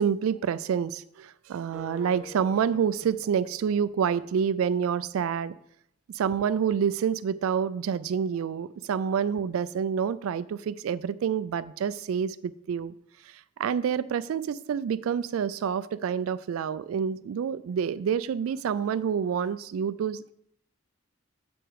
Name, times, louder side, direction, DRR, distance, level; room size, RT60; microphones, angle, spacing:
voice 1, 0.0-5.5 6.1-12.9 13.2-20.3, right 7 dB, 85° right, 16 dB, 0.3 m, -28 dB
Acoustic guitar, 1.7-4.5, left 3 dB, 5° right, 1.2 m, -49 dB
7.9 x 6.2 x 4.7 m, 0.74 s
head